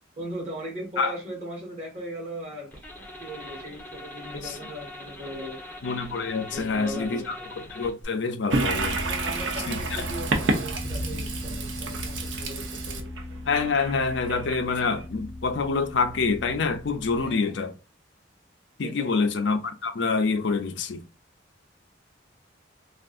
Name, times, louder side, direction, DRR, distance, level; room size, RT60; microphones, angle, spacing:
voice 1, 0.2-2.9 3.2-5.6 6.5-7.4 9.0-13.1 17.1-17.6 18.8-19.1, right 1 dB, 35° right, 1.7 m, -38 dB
sound 1, 2.7-8.0, left 1 dB, 10° left, 1.1 m, -42 dB
voice 2, 5.8-7.4 7.7-9.0 9.7-10.0 13.5-17.7 18.8-21.0, left 4 dB, 65° left, 0.5 m, -26 dB
Toilet flush, 8.5-15.0, right 3 dB, 75° right, 0.7 m, -30 dB
sound 2, 8.7-17.4, left 1 dB, 15° right, 0.5 m, -39 dB
3.5 x 2.4 x 2.5 m
head